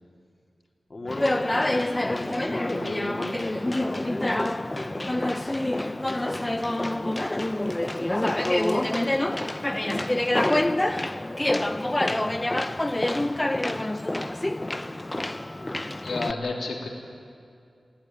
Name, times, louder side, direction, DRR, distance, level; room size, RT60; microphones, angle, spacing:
voice 1, 0.9-5.2 5.8-7.0, left 2 dB, 40° left, 1 dB, 2.9 m, -38 dB
Conversation, 1.1-16.3, left 1 dB, 20° left, 0.7 m, -26 dB
voice 2, 16.0-16.9, left 3 dB, 80° left, 0 dB, 3.2 m, -30 dB
23.0 x 16.0 x 9.2 m, 2.4 s
wide cardioid pair, 85°, 0 cm